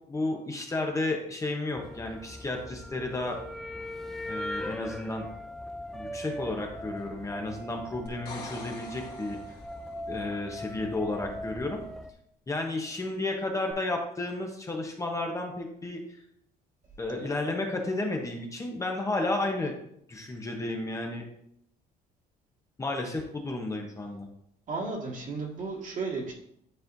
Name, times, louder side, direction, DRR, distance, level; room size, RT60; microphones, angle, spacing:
voice 1, 0.1-3.4 4.3-5.2 5.9-9.4 10.1-11.8 12.5-16.0 17.0-19.7 20.1-21.2 22.8-24.3, left 2 dB, 20° left, 1 dB, 1.0 m, -32 dB
sound 1, 1.7-12.1, equal, ahead, 0.5 m, -40 dB
sound 2, 8.1-10.0 13.7-13.8, left 3 dB, 65° left, 2.0 m, -44 dB
voice 2, 24.7-26.3, right 3 dB, 50° right, -2 dB, 2.0 m, -34 dB
9.7 x 4.2 x 2.7 m, 0.73 s
cardioid pair, 110°, 17 cm